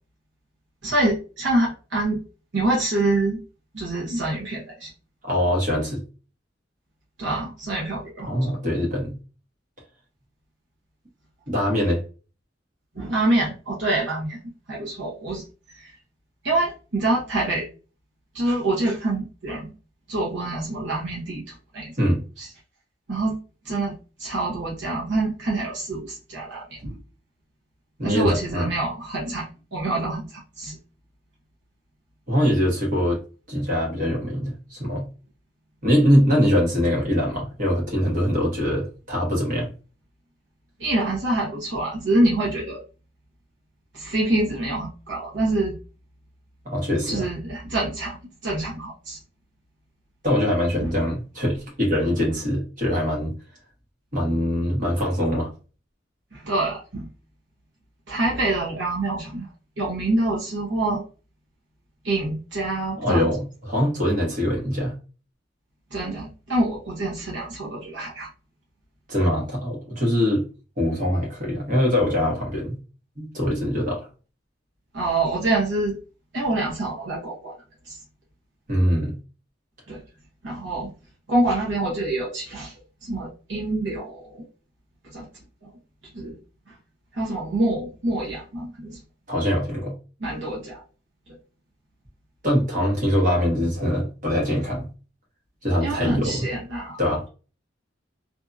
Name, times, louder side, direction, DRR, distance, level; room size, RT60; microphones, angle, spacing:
voice 1, 0.8-2.2 2.5-3.4 3.7-4.9 7.2-8.3 12.9-14.4 14.7-15.4 15.7-15.9 16.4-17.7 18.3-19.7 20.1-21.9 22.4-22.5 23.1-23.4 23.6-27.0 28.0-30.7 40.8-42.8 43.9-45.8 47.1-48.2 48.4-49.2 50.8-50.9 56.3-57.1 58.1-59.5 59.8-61.0 62.0-63.3 65.9-68.3 74.9-76.0 76.3-77.5 77.8-78.0 79.9-80.0 80.4-80.9 81.3-82.7 83.0-84.4 85.1-85.3 85.6-85.7 86.1-86.4 86.7-86.8 87.1-89.0 90.2-90.8 91.3-91.4 95.8-97.0, right 2 dB, 70° right, -4 dB, 0.9 m, -26 dB
voice 2, 5.2-6.0 8.3-9.2 11.5-12.0 22.0-22.2 28.0-28.7 32.3-33.2 33.5-35.0 35.8-39.7 46.6-47.3 50.2-53.3 54.1-55.5 63.0-64.9 69.1-70.4 70.8-72.8 73.2-74.1 78.7-79.1 89.3-89.9 92.4-94.9 95.6-96.5 97.0-97.2, equal, 45° right, -2 dB, 1.2 m, -23 dB
2.6 x 2.6 x 2.3 m, 0.34 s
head